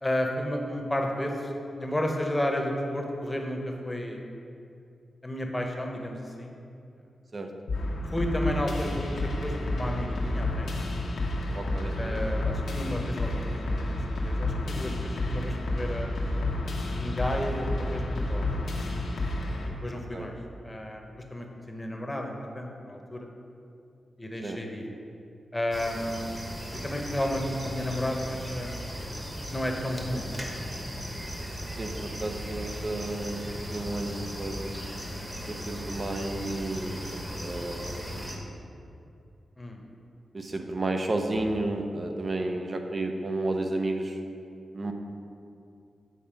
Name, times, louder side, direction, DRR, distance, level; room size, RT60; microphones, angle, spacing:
voice 1, 0.0-1.5 1.8-4.2 5.2-6.5 8.1-10.7 12.0-14.0 14.2-16.1 17.0-18.5 19.8-20.3 20.6-23.3 24.2-24.8 25.5-26.3 26.8-28.9 29.5-30.5 39.6-39.8, left 1 dB, 15° left, 2 dB, 0.9 m, -32 dB
sound 1, 7.7-19.7, left 2 dB, 80° left, 1.0 m, -30 dB
voice 2, 11.5-12.4 19.9-20.3 24.4-24.6 31.8-33.4 33.7-34.8 35.5-38.6 40.3-44.2 44.7-44.9, right 2 dB, 40° right, 4 dB, 0.7 m, -32 dB
sound 2, 25.7-38.4, equal, 15° right, 1.1 m, -37 dB
7.6 x 4.0 x 5.2 m, 2.6 s
cardioid pair, 70°, 0 cm